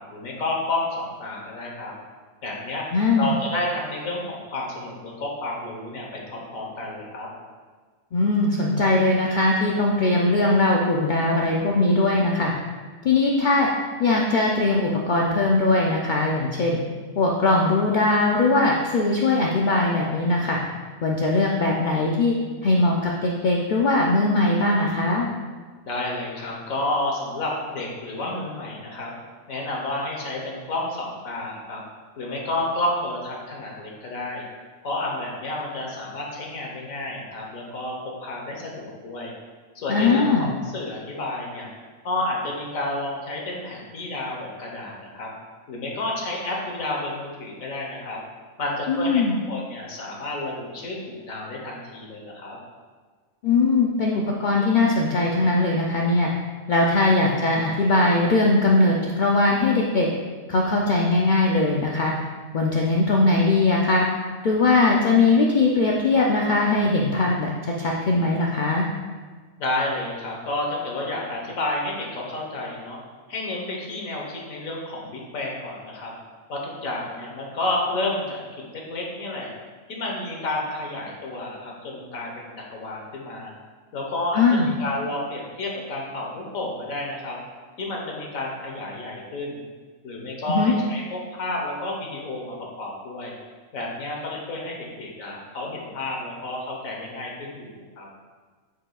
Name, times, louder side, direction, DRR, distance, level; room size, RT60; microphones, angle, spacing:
voice 1, 0.0-1.9 2.4-2.9 3.2-7.3 25.8-29.1 29.5-31.8 32.2-34.4 34.8-39.3 39.7-41.7 42.0-45.3 45.7-48.2 48.6-52.6 69.6-73.0 73.3-76.1 76.5-78.4 78.7-79.5 79.9-83.5 83.9-87.4 87.8-89.6 90.0-93.3 93.7-98.1, left 2 dB, 80° left, -1 dB, 1.5 m, -30 dB
voice 2, 2.9-3.3 8.1-12.5 13.0-13.7 14.0-16.8 17.2-20.6 21.0-22.3 22.6-25.3 39.9-40.5 48.9-49.3 53.4-56.3 56.7-60.1 60.5-62.1 62.5-64.1 64.4-67.5 67.8-68.9 84.4-84.7 90.5-90.7, left 2 dB, 60° left, -2 dB, 0.5 m, -20 dB
8.9 x 4.8 x 2.3 m, 1.5 s
omnidirectional pair, 1.4 m